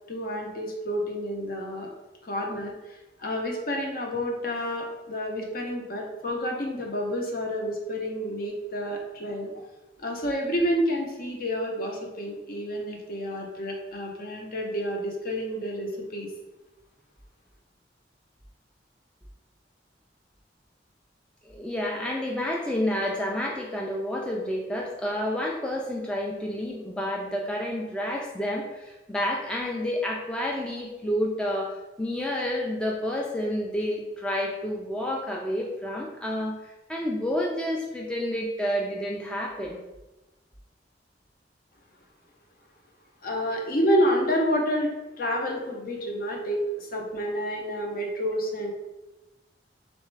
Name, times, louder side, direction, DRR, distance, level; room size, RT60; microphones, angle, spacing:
voice 1, 0.1-1.9 2.2-9.5 10.0-16.3 43.2-44.9 45.2-48.7, equal, 55° left, 1 dB, 0.7 m, -29 dB
voice 2, 21.4-39.8, left 1 dB, 5° left, -2 dB, 0.3 m, -29 dB
3.4 x 3.1 x 3.2 m, 1.0 s
head